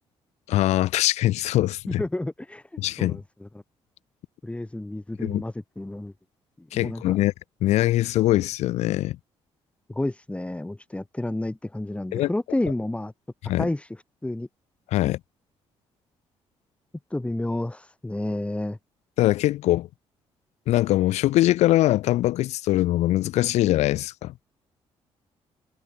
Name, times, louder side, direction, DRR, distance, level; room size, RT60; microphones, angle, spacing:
voice 1, 0.5-2.0 2.8-3.2 5.2-5.4 6.7-7.3 7.6-9.2 12.1-12.3 13.4-13.7 14.9-15.2 19.2-19.9 20.7-24.3, left 15 dB, 85° left, 2.0 m, -22 dB
voice 2, 1.9-2.6 3.0-3.5 4.4-6.1 6.6-7.2 9.9-13.1 13.6-14.0 14.2-14.5 17.1-18.8, left 1 dB, 10° left, 2.6 m, -30 dB
cardioid pair, 85°, 11 cm